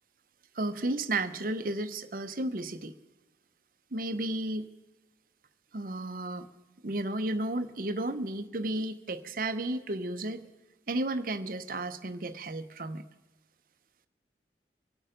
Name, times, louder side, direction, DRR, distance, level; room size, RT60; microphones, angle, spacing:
voice 1, 0.5-2.9 3.9-4.7 5.7-6.5 6.8-10.5 10.9-13.0, right 2 dB, 50° right, 11 dB, 0.8 m, -33 dB
24.0 x 8.7 x 5.2 m, 1.1 s
head